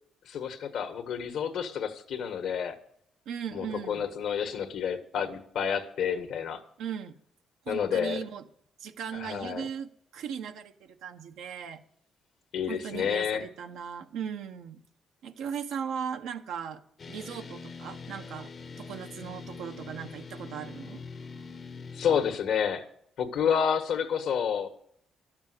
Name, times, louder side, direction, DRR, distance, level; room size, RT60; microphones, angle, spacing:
voice 1, 0.3-2.7 3.5-6.6 7.7-8.2 9.1-9.7 12.5-13.4 21.9-22.8 23.2-24.7, left 7 dB, 75° left, 7 dB, 1.6 m, -29 dB
voice 2, 3.3-4.1 6.8-7.2 7.6-8.5 8.8-11.8 12.7-14.8 15.2-16.8 17.1-18.5 18.8-21.6, right 7 dB, 85° right, 6 dB, 1.1 m, -38 dB
sound 1, 17.0-22.4, left 4 dB, 45° left, 0.9 m, -43 dB
12.5 x 7.3 x 8.0 m, 0.66 s
cardioid pair, 90°, 0 cm